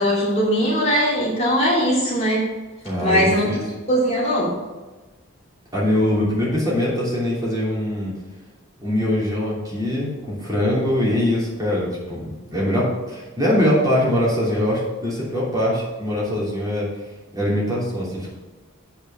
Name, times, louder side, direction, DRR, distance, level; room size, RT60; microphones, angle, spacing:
voice 1, 0.0-2.4 3.0-3.5 3.9-4.5, equal, 30° left, -6 dB, 3.0 m, -20 dB
voice 2, 2.8-3.6 5.7-8.1 8.8-16.9 17.3-18.3, left 1 dB, 15° right, -7 dB, 3.1 m, -22 dB
9.0 x 5.7 x 6.1 m, 1.2 s
head